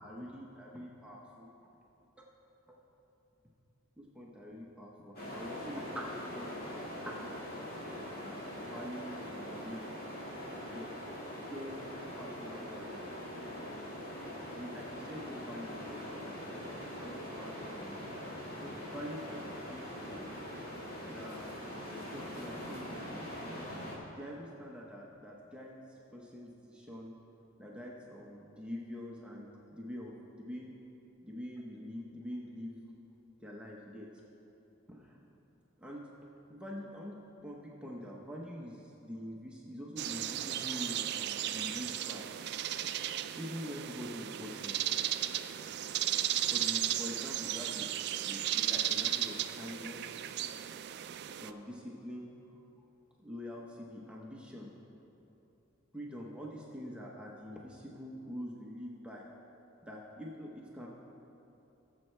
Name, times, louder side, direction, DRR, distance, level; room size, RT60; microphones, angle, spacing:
voice 1, 0.0-1.5 2.7-2.8 4.0-6.6 7.0-8.4 8.6-10.0 10.7-10.9 11.5-13.1 14.5-16.3 17.0-18.1 18.6-20.4 21.0-21.5 22.0-23.3 24.1-27.1 27.6-30.7 31.2-32.8 33.4-34.1 34.9-35.2 35.8-36.1 36.5-42.3 43.4-44.8 46.5-47.9 48.3-50.2 51.4-52.6 53.2-54.7 55.9-59.3 59.8-60.9, equal, 5° right, -3 dB, 0.8 m, -45 dB
sound 1, 5.2-24.0, equal, 45° left, 1.9 m, -42 dB
sound 2, 40.0-51.5, right 11 dB, 55° right, 0.3 m, -35 dB
16.5 x 7.5 x 3.3 m, 3.0 s
head